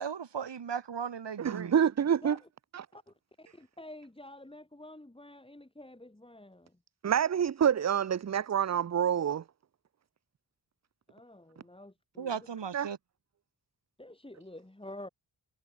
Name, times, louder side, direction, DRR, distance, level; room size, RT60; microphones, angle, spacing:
voice 1, 0.0-1.7 12.2-13.0, right 7 dB, 70° right, 2.0 m, -36 dB
voice 2, 1.4-2.4 2.7-2.9 7.0-9.4 12.7-12.9, right 8 dB, 40° right, 0.5 m, -27 dB
voice 3, 2.9-6.8 11.1-12.5 14.0-15.1, left 1 dB, 10° left, 3.5 m, -49 dB
wide cardioid pair, 120°, 44 cm